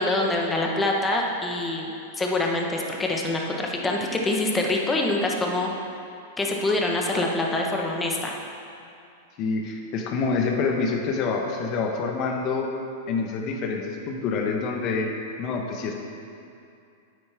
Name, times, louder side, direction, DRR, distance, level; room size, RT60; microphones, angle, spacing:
voice 1, 0.0-5.7 6.4-8.3, left 2 dB, 15° left, 0 dB, 1.2 m, -25 dB
voice 2, 9.4-12.7 13.1-15.1 15.4-15.9, left 4 dB, 45° left, 2 dB, 1.1 m, -27 dB
9.5 x 8.8 x 3.6 m, 2.5 s
hypercardioid pair, 120°, 0 cm